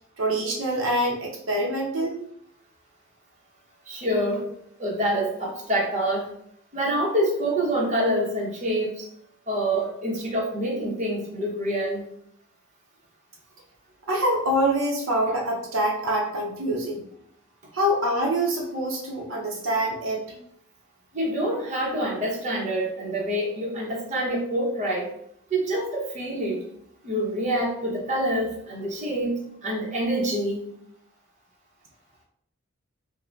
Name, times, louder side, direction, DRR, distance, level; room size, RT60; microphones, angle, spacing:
voice 1, 0.2-2.2 14.1-17.0 17.7-20.4, right 1 dB, 70° right, -2 dB, 0.7 m, -25 dB
voice 2, 3.8-4.5 4.8-6.3 6.7-9.1 9.5-12.0 21.1-25.1 25.5-26.6 27.0-29.4 29.6-30.7, right 1 dB, 35° right, -3 dB, 0.8 m, -26 dB
3.9 x 2.1 x 3.1 m, 0.71 s
head